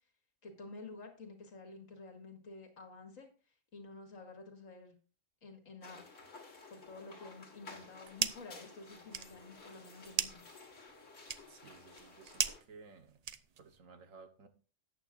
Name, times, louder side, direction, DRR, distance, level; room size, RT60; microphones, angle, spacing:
voice 1, 0.4-3.3 3.7-5.0 5.4-6.1 6.7-10.4, left 3 dB, 90° left, 4 dB, 2.3 m, -51 dB
sound 1, 5.8-12.6, left 3 dB, 65° left, 2.1 m, -54 dB
sound 2, 7.7-8.6 8.9-13.8, right 7 dB, 60° right, 0.4 m, -39 dB
voice 2, 11.5-13.2 13.6-14.5, right 4 dB, 85° right, 8 dB, 1.5 m, -56 dB
13.5 x 8.9 x 2.5 m, 0.36 s
omnidirectional pair, 1.3 m